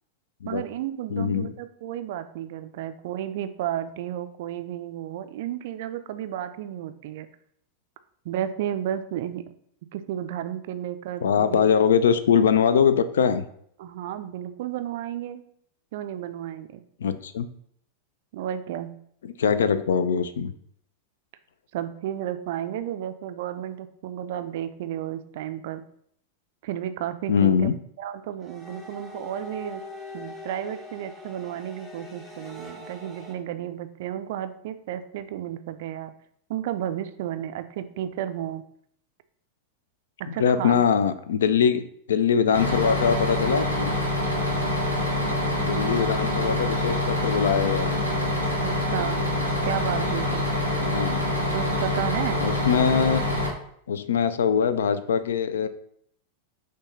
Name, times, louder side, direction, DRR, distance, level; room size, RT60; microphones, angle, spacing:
voice 1, 0.5-7.3 8.2-9.4 9.9-11.6 13.8-15.4 15.9-16.8 18.3-18.9 21.7-25.8 26.6-27.7 28.0-29.8 30.1-36.1 36.5-38.6 40.2-40.8 45.2-46.0 48.6-49.2 49.6-50.4 51.5-52.4, right 11 dB, 55° right, 10 dB, 0.3 m, -32 dB
voice 2, 1.1-1.5 11.2-13.5 17.0-17.5 19.2-20.5 27.3-27.8 40.4-43.9 45.6-48.0 50.8-51.2 52.4-53.2 53.9-55.7, left 7 dB, 65° left, 13 dB, 0.3 m, -22 dB
sound 1, 28.4-33.3, left 2 dB, ahead, 0.9 m, -42 dB
Bus, 42.5-53.5, left 1 dB, 90° left, 1.0 m, -25 dB
6.0 x 2.3 x 3.7 m, 0.66 s
figure-of-eight pair, 90°, 0 cm